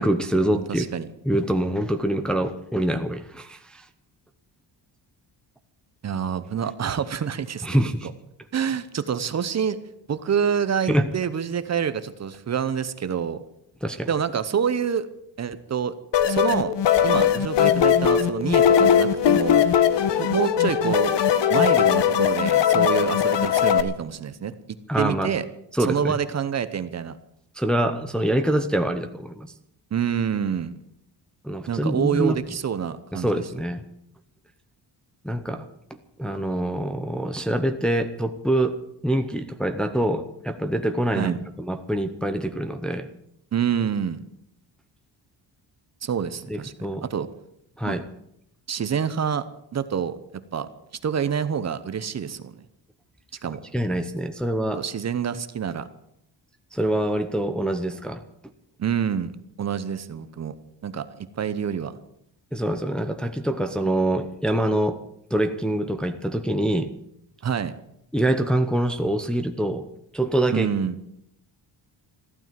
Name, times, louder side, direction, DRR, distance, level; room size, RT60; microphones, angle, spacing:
voice 1, 0.0-0.9 1.2-3.9 7.6-8.1 10.9-11.1 13.8-14.1 24.9-25.3 25.7-26.2 27.5-29.5 31.4-32.4 33.1-33.8 35.2-35.7 36.2-38.8 39.0-43.1 46.5-47.0 47.8-48.0 53.7-54.8 56.7-58.2 62.5-65.0 65.3-66.9 68.1-69.9 70.1-70.7, right 1 dB, ahead, 6 dB, 0.7 m, -25 dB
voice 2, 0.5-1.1 6.0-7.8 8.0-8.1 8.5-9.8 10.1-13.4 14.1-15.1 15.4-15.9 16.3-16.7 17.0-19.7 20.2-21.1 21.5-25.4 25.9-27.2 29.9-30.7 31.7-33.4 41.1-41.4 43.5-44.2 46.0-46.7 47.1-47.3 47.9-48.0 48.7-49.4 49.7-50.7 51.0-52.6 53.4-53.6 54.7-55.9 58.8-59.3 59.6-60.5 60.8-61.9 67.4-67.7 70.5-71.0, right 7 dB, 35° right, 12 dB, 0.8 m, -27 dB
sound 1, 16.1-23.8, left 9 dB, 70° left, 1.2 m, -20 dB
14.5 x 12.5 x 7.5 m, 0.75 s
wide cardioid pair, 175°, 44 cm